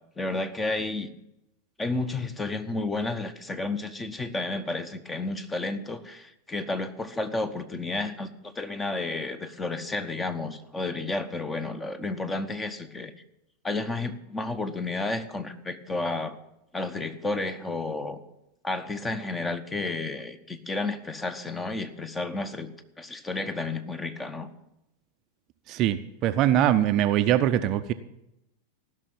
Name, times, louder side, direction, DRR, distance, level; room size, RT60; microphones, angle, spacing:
voice 1, 0.2-1.1 1.8-13.1 13.6-16.4 16.7-18.2 18.6-22.7 23.0-24.5, left 2 dB, 15° left, 11 dB, 1.0 m, -31 dB
voice 2, 25.7-27.9, right 11 dB, 35° right, 10 dB, 0.6 m, -22 dB
15.0 x 6.3 x 9.1 m, 0.85 s
figure-of-eight pair, 90°, 0 cm